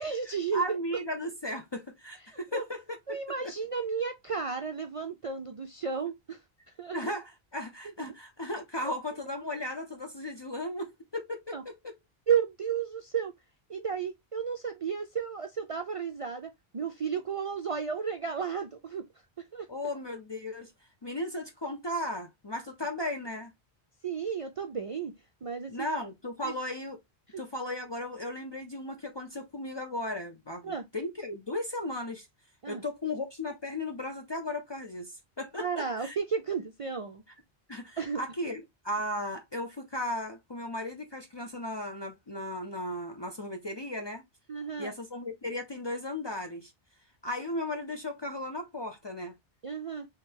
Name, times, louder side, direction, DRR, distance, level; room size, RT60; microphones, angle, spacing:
voice 1, 0.0-0.8 2.2-2.6 3.1-6.4 6.8-7.0 8.8-8.9 11.5-11.6 12.3-13.3 13.7-19.1 19.4-19.7 24.0-25.1 25.4-25.9 26.4-26.5 27.3-27.4 30.6-30.8 32.6-32.8 35.6-37.2 38.0-38.2 44.5-44.9 49.6-50.1, right 6 dB, 50° right, 0.4 m, -33 dB
voice 2, 0.5-3.0 6.9-11.9 19.7-20.7 21.0-23.5 25.7-27.0 27.4-32.3 32.7-36.2 37.7-44.2 44.8-46.7 47.2-49.3, left 1 dB, 35° left, 0.4 m, -36 dB
3.6 x 3.2 x 2.7 m
omnidirectional pair, 1.0 m